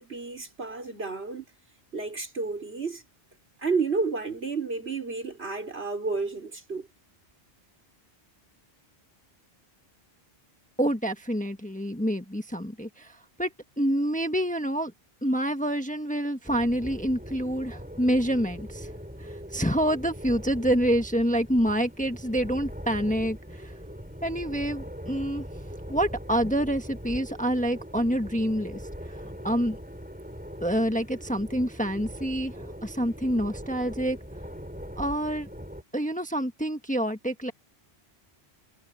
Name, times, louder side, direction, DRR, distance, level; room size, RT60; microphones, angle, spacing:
voice 1, 0.0-1.4 1.9-3.0 3.6-6.9, right 4 dB, 70° right, 4.7 m, -31 dB
voice 2, 10.8-12.9 13.4-13.5 13.8-14.9 15.2-18.9 19.5-23.4 24.2-25.4 25.9-28.8 29.4-29.8 30.6-32.5 32.8-34.2 35.0-35.5 35.9-37.5, equal, 5° left, 1.3 m, -27 dB
sound 1, 16.4-35.8, equal, 10° right, 8.1 m, -41 dB
omnidirectional pair, 1.1 m